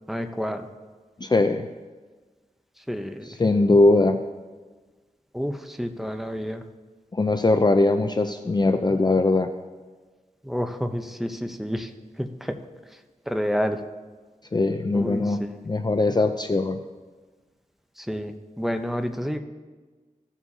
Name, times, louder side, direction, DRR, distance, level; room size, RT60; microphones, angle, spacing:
voice 1, 0.1-0.7 2.9-3.3 5.3-6.6 10.4-11.9 12.2-12.6 13.3-13.8 14.9-15.5 18.0-19.4, equal, ahead, 6 dB, 0.7 m, -29 dB
voice 2, 1.2-1.7 3.3-4.2 7.1-9.5 14.5-16.8, left 2 dB, 30° left, 7 dB, 0.4 m, -21 dB
16.0 x 7.2 x 2.7 m, 1.4 s
wide cardioid pair, 65°, 14 cm